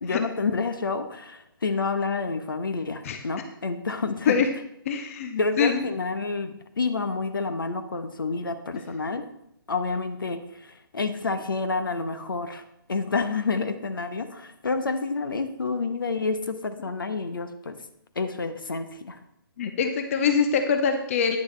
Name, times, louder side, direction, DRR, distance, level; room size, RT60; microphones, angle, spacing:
voice 1, 0.0-4.4 5.4-9.2 9.7-12.6 12.9-17.8 18.1-19.2, left 4 dB, 65° left, 9 dB, 1.0 m, -29 dB
voice 2, 4.9-5.9 19.6-21.4, left 6 dB, 35° left, 7 dB, 0.8 m, -24 dB
10.5 x 9.7 x 3.3 m, 0.79 s
figure-of-eight pair, 135°, 12 cm